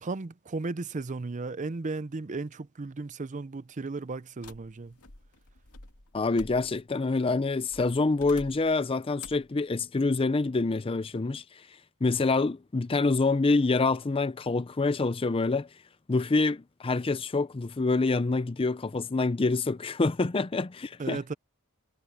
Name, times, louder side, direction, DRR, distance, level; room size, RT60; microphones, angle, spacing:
voice 1, 0.0-4.9 21.0-21.3, right 3 dB, 35° right, 0.5 m, -35 dB
sound 1, 4.4-7.0 7.7-8.8 9.2-9.5, left 2 dB, 80° left, 2.3 m, -49 dB
voice 2, 6.1-11.4 12.0-15.7 16.1-21.2, left 3 dB, 25° left, 0.5 m, -26 dB
head